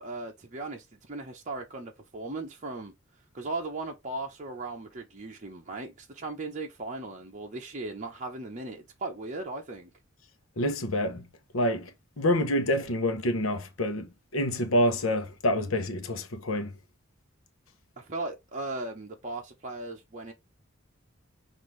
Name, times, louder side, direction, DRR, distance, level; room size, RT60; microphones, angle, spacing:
voice 1, 0.0-2.9 3.3-9.9 18.0-20.3, right 2 dB, 35° right, 0.8 m, -37 dB
voice 2, 10.6-11.2 11.5-11.9 12.2-16.7, left 1 dB, 85° left, 0.9 m, -27 dB
5.9 x 2.7 x 3.2 m
head